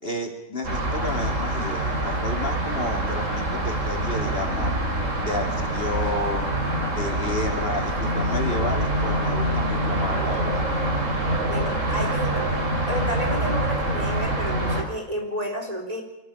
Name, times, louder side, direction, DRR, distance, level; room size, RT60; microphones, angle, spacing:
voice 1, 0.0-4.8 5.2-6.6 6.9-10.6, left 1 dB, 50° left, 3 dB, 3.0 m, -31 dB
sound 1, 0.6-14.8, right 1 dB, 80° right, 4.0 m, -25 dB
voice 2, 11.5-12.5 12.9-16.0, equal, 30° right, 1 dB, 4.0 m, -31 dB
24.5 x 14.5 x 8.6 m, 0.93 s
omnidirectional pair, 1.3 m